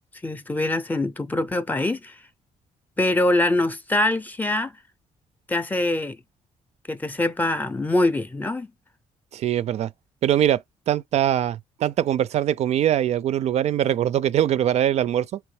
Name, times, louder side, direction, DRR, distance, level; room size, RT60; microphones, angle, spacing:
voice 1, 0.2-2.1 3.0-4.7 5.5-6.2 6.9-8.7, left 2 dB, 15° left, 0.5 m, -23 dB
voice 2, 9.3-9.9 10.2-15.4, right 11 dB, 60° right, 0.4 m, -22 dB
4.5 x 3.0 x 3.2 m
cardioid pair, 120°, 13 cm